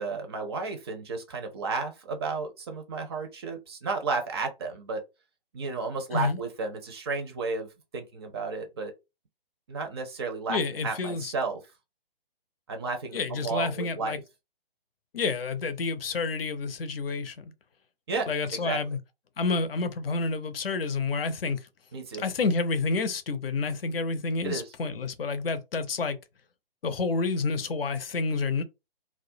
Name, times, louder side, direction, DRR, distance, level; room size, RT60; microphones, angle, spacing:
voice 1, 0.0-5.0 5.5-7.7 7.9-8.9 9.7-11.6 12.7-14.2 18.1-18.8 21.9-22.2 24.4-24.7, right 4 dB, 25° right, 0.4 m, -33 dB
voice 2, 10.5-11.3 13.1-14.2 15.1-17.4 18.3-19.0 19.4-21.6 22.2-26.2 26.8-28.6, left 4 dB, 75° left, 0.6 m, -29 dB
2.2 x 2.0 x 2.7 m
figure-of-eight pair, 135°, 29 cm